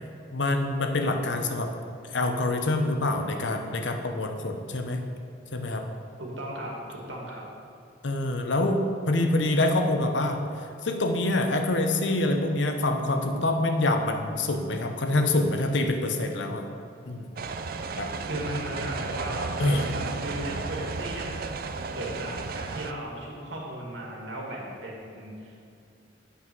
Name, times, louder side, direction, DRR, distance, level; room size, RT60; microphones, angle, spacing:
voice 1, 0.3-1.7 2.1-5.0 5.5-5.8 8.0-8.8 9.1-10.4 10.8-16.7 17.1-17.3 18.0-18.1 19.6-20.2, left 2 dB, 75° left, 4 dB, 0.9 m, -26 dB
voice 2, 6.2-7.5 18.3-21.3 21.7-25.6, right 1 dB, 80° right, -2 dB, 2.1 m, -36 dB
sound 1, 17.4-22.9, right 4 dB, 50° right, 0.4 m, -34 dB
8.4 x 5.8 x 6.1 m, 2.5 s
head